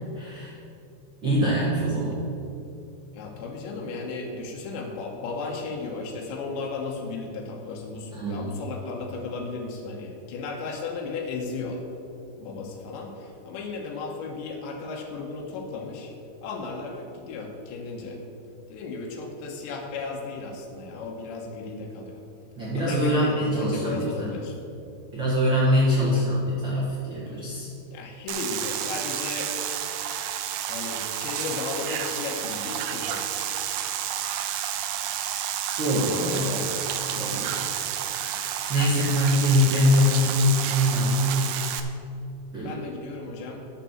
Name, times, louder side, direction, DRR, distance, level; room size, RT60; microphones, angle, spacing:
voice 1, 0.1-0.5 1.2-2.2 8.1-8.5 22.6-24.4 25.1-27.7 35.8-36.5 37.1-37.5 38.2-41.5 42.5-42.8, equal, 50° right, -7 dB, 1.3 m, -24 dB
voice 2, 3.1-11.8 12.4-16.1 16.4-18.2 18.7-22.2 22.8-24.6 25.9-26.3 27.9-29.5 30.7-33.2 36.2-36.8 38.1-38.4 42.5-43.6, left 4 dB, 80° left, -1 dB, 3.5 m, -35 dB
sound 1, 28.3-41.8, right 10 dB, 85° right, 2.9 m, -30 dB
9.8 x 6.6 x 7.3 m, 2.7 s
omnidirectional pair, 5.1 m